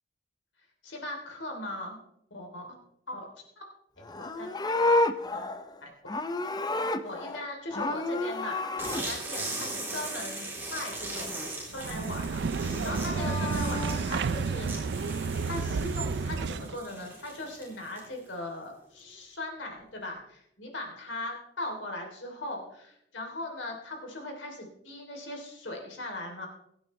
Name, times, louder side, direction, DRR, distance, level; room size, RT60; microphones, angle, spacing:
voice 1, 0.8-2.0 2.3-2.7 3.1-3.3 3.6-3.7 4.2-4.5 5.3-5.4 5.8-5.9 7.0-10.5 10.7-14.7 15.4-26.5, left 1 dB, 90° left, 1 dB, 3.1 m, -39 dB
Livestock farm animals working animals, 4.0-7.4 7.7-9.0 12.8-14.0, left 2 dB, 20° left, 0.6 m, -30 dB
sound 1, 8.8-18.3, right 2 dB, 15° right, 3.3 m, -39 dB
sound 2, 11.7-16.8, right 4 dB, 65° right, 0.4 m, -31 dB
22.0 x 8.7 x 3.2 m, 0.76 s
head